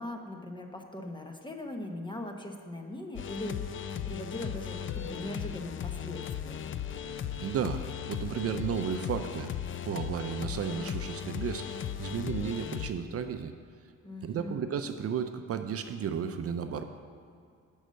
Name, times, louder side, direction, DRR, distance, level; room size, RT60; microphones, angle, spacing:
voice 1, 0.0-3.6 4.0-6.7 14.0-14.7, left 1 dB, 15° left, 3 dB, 0.9 m, -40 dB
sound 1, 3.2-12.9, left 9 dB, 40° left, 0.4 m, -37 dB
voice 2, 7.4-9.6 9.8-13.5 14.2-16.8, right 7 dB, 50° right, 8 dB, 0.5 m, -33 dB
7.9 x 5.5 x 6.3 m, 2.3 s
cardioid pair, 90°, 30 cm